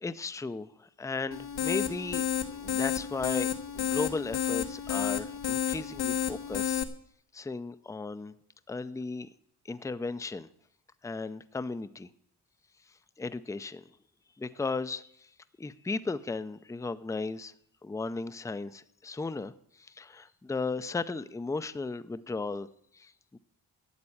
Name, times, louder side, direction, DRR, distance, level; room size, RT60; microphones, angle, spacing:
voice 1, 0.0-3.5 3.7-6.8 7.3-8.3 8.7-9.3 9.7-10.5 11.0-12.1 13.2-13.9 14.4-15.0 15.6-17.5 17.8-22.7 22.9-23.4, left 3 dB, 10° left, 13 dB, 0.5 m, -35 dB
sound 1, 1.3-6.8, left 9 dB, 85° left, 1.4 m, -31 dB
12.5 x 8.7 x 8.5 m, 0.69 s
wide cardioid pair, 125°, 38 cm